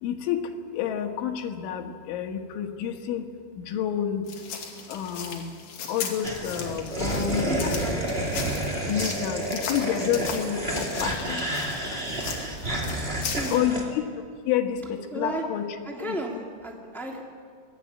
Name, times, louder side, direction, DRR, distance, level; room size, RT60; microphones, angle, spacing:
voice 1, 0.0-3.3 3.6-4.3 4.9-5.5 5.9-8.2 8.9-11.5 11.9-12.0 13.5-14.0 14.5-16.2, left 9 dB, 70° left, 4 dB, 3.9 m, -29 dB
sound 1, 4.3-13.6, left 6 dB, 50° left, 3.8 m, -37 dB
sound 2, 6.2-13.8, right 1 dB, 15° right, 2.0 m, -30 dB
voice 2, 7.5-8.2 13.3-13.9 15.1-15.4 15.8-17.2, right 1 dB, ahead, 0 dB, 1.1 m, -34 dB
27.0 x 18.5 x 8.5 m, 2.1 s
omnidirectional pair, 5.9 m